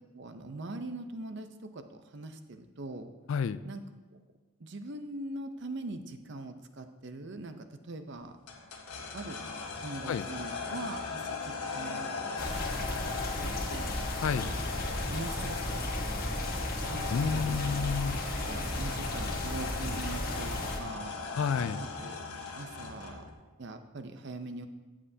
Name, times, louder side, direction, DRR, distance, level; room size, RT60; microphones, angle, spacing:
voice 1, 0.1-1.5 1.7-3.1 3.6-3.8 4.6-7.6 7.9-8.3 9.1-9.4 9.8-12.1 13.4-14.0 14.4-14.5 14.7-17.9 18.4-21.1 22.0-22.2 22.6-23.2 23.6-24.7, right 2 dB, 50° right, 8 dB, 0.6 m, -42 dB
sound 1, 8.5-23.3, left 4 dB, 85° left, 1.3 m, -39 dB
sound 2, 12.4-20.8, left 1 dB, 40° left, 1.3 m, -34 dB
voice 2, 17.1-18.2 21.4-21.8, left 6 dB, 65° left, 15 dB, 0.3 m, -30 dB
14.5 x 7.5 x 2.7 m, 1.2 s
head